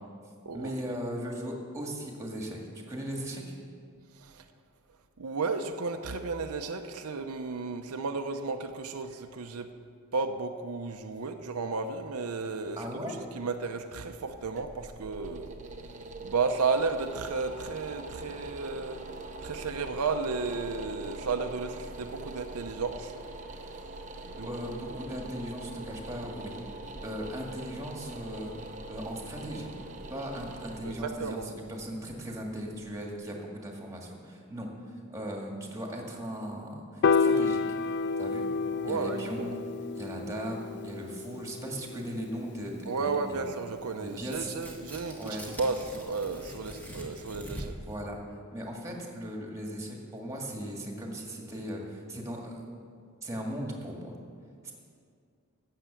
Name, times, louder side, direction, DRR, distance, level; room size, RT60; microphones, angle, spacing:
voice 1, 0.5-3.6 12.8-13.3 24.4-26.5 27.0-28.5 28.9-29.7 30.1-37.6 38.2-38.5 38.9-39.6 39.9-43.4 44.0-44.5 45.2-45.4 47.7-48.2 48.5-52.6 53.2-54.2 54.6-54.7, equal, 15° right, 0 dB, 1.8 m, -38 dB
voice 2, 5.2-9.7 10.1-12.9 13.3-15.5 16.2-19.0 19.4-23.1 24.3-24.5 24.9-25.0 30.8-31.5 38.7-39.5 42.9-47.8, right 4 dB, 85° right, 6 dB, 0.7 m, -33 dB
sound 1, 14.2-33.1, right 2 dB, 35° right, 0.8 m, -43 dB
Piano, 37.0-43.3, left 5 dB, 50° left, 0.3 m, -30 dB
Tearing, 44.3-47.9, equal, 10° left, 1.6 m, -43 dB
13.5 x 6.8 x 8.3 m, 2.2 s
head